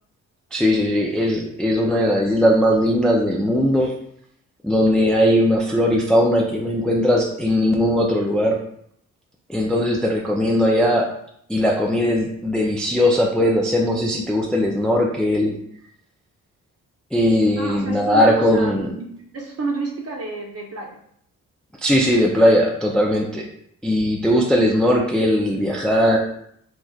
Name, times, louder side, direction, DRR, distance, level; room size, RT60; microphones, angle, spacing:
voice 1, 0.5-3.9 4.6-8.6 9.5-11.1 11.5-15.6 17.1-18.9 21.8-23.5 23.8-26.2, equal, ahead, 0 dB, 0.3 m, -19 dB
voice 2, 17.6-21.0, right 3 dB, 45° right, -1 dB, 0.8 m, -30 dB
3.1 x 2.5 x 2.3 m, 0.68 s
cardioid pair, 70°, 33 cm